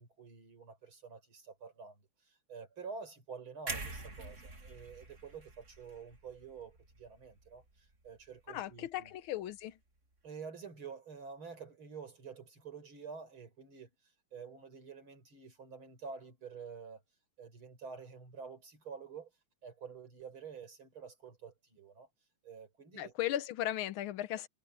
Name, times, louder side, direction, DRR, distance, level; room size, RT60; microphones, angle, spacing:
voice 1, 0.0-9.1 10.2-13.9 14.3-17.0 17.4-19.3 19.6-22.1 22.4-23.1, right 5 dB, 80° right, 5.8 m, -49 dB
sound 1, 3.7-7.7 8.0-8.3, right 3 dB, 35° right, 2.6 m, -45 dB
voice 2, 8.5-9.8 22.9-24.5, left 13 dB, 80° left, 1.6 m, -36 dB
omnidirectional pair, 2.3 m